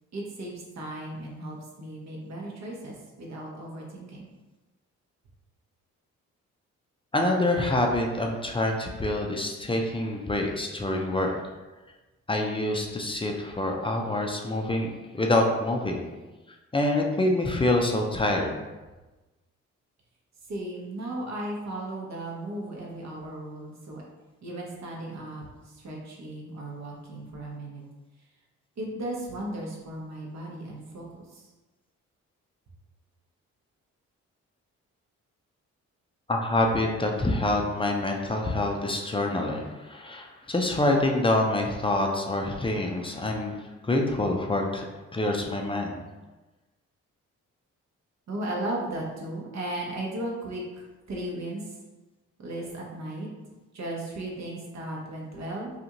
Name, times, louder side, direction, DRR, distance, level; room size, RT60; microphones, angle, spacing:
voice 1, 0.1-4.3 20.5-24.0 24.4-27.8 28.8-31.4 48.3-50.6 51.1-51.7 52.4-53.3 53.7-55.7, right 1 dB, 50° right, -2 dB, 0.9 m, -36 dB
voice 2, 7.1-11.4 12.3-16.0 16.7-18.6 36.3-46.0, left 1 dB, 15° left, 1 dB, 0.4 m, -26 dB
2.4 x 2.4 x 2.9 m, 1.2 s
hypercardioid pair, 45°, 36 cm